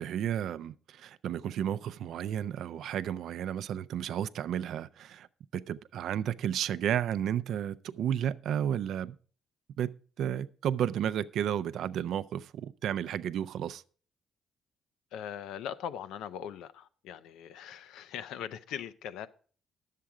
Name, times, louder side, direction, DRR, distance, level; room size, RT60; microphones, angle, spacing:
voice 1, 0.0-5.3 5.5-9.2 9.8-13.8, right 10 dB, 75° right, 0.4 m, -32 dB
voice 2, 15.1-19.3, left 9 dB, 90° left, 0.5 m, -40 dB
10.5 x 7.5 x 4.7 m
cardioid pair, 90°, 0 cm